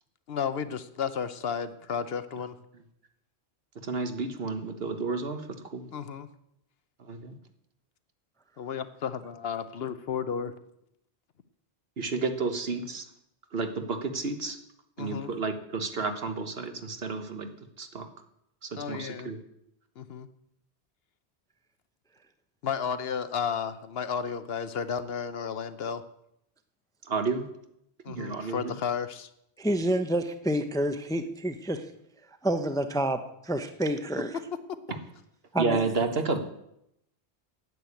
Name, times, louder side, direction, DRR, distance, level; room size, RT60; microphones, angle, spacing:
voice 1, 0.3-2.6 5.9-6.3 8.6-10.5 15.0-15.3 18.8-19.3 20.0-20.3 22.6-26.0 28.0-29.3, left 7 dB, 65° left, 12 dB, 1.0 m, -33 dB
voice 2, 3.8-5.4 5.7-5.8 7.0-7.3 12.0-13.0 13.5-14.6 15.0-17.5 17.8-18.1 18.6-19.4 27.0-27.4 28.1-28.7 35.6-36.4, right 4 dB, 65° right, 7 dB, 1.5 m, -31 dB
voice 3, 29.6-31.8 32.4-34.3 35.5-36.0, right 1 dB, 5° left, 9 dB, 0.6 m, -28 dB
9.4 x 8.6 x 8.4 m, 0.79 s
omnidirectional pair, 1.1 m